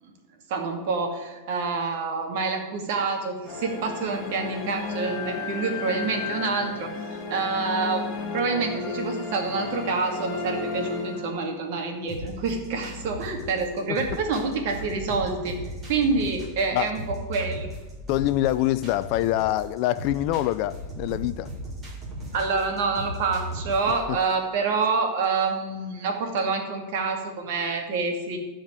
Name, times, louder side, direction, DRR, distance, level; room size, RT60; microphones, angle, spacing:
voice 1, 0.5-6.9 7.3-15.6 15.9-17.7 22.3-28.4, right 4 dB, 55° right, 2.5 m, -27 dB
sound 1, 3.4-11.8, left 4 dB, 25° left, 1.9 m, -33 dB
sound 2, 12.1-24.1, equal, 25° right, 3.2 m, -37 dB
voice 2, 18.1-21.5 24.1-24.2, left 14 dB, 45° left, 0.5 m, -25 dB
13.0 x 5.1 x 9.0 m
supercardioid pair, 155°, 0 cm